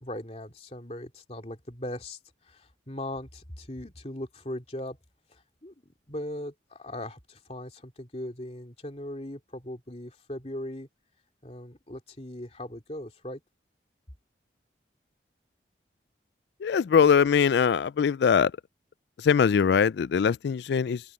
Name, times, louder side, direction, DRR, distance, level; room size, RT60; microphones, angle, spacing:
voice 1, 0.0-5.0 5.3-10.9 11.4-13.4, left 1 dB, 35° left, 2.9 m, -39 dB
voice 2, 16.6-18.5 19.2-21.0, left 6 dB, 70° left, 0.3 m, -22 dB
open air
head